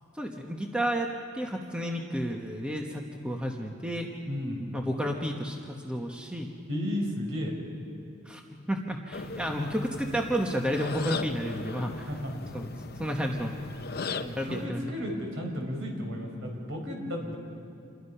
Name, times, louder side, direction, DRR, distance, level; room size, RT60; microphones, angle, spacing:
voice 1, 0.1-4.1 4.7-6.5 8.2-8.4 8.7-12.1 12.5-12.7 13.0-13.5 14.3-15.0, equal, 5° right, 1 dB, 1.2 m, -31 dB
voice 2, 4.3-4.6 6.7-7.5 12.1-12.4 14.0-17.4, left 1 dB, 60° right, 1 dB, 4.9 m, -34 dB
sound 1, 9.1-14.7, left 4 dB, 50° left, 0.7 m, -38 dB
28.0 x 22.0 x 5.7 m, 2.7 s
head